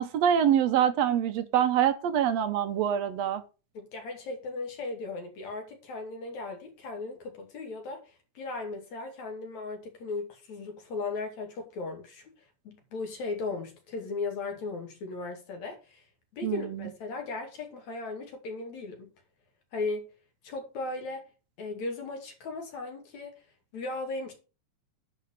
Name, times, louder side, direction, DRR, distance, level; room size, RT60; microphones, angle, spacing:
voice 1, 0.0-3.4 16.4-16.9, right 9 dB, 70° right, 1.8 m, -25 dB
voice 2, 3.7-12.3 12.7-16.0 16.3-19.1 19.7-20.1 20.4-21.2 21.6-23.3 23.7-24.3, left 3 dB, 65° left, 3.6 m, -37 dB
11.0 x 4.8 x 6.4 m
omnidirectional pair, 3.4 m